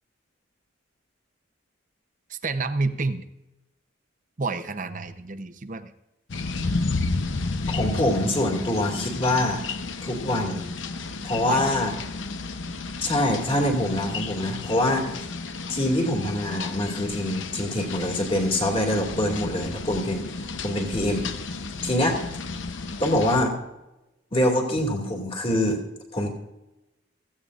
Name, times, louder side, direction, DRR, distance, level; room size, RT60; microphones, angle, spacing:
voice 1, 2.3-3.2 4.4-5.9 11.4-11.9, right 3 dB, 40° right, 10 dB, 0.7 m, -29 dB
sound 1, 6.3-23.4, left 3 dB, 70° left, 0.8 m, -32 dB
voice 2, 7.7-9.6 10.0-10.7 11.2-11.9 13.0-15.1 15.7-20.3 20.6-21.3 21.8-22.2 23.0-23.5 24.3-25.8 26.1-26.3, left 1 dB, 30° left, 1 dB, 2.3 m, -24 dB
16.0 x 15.0 x 2.5 m, 0.96 s
head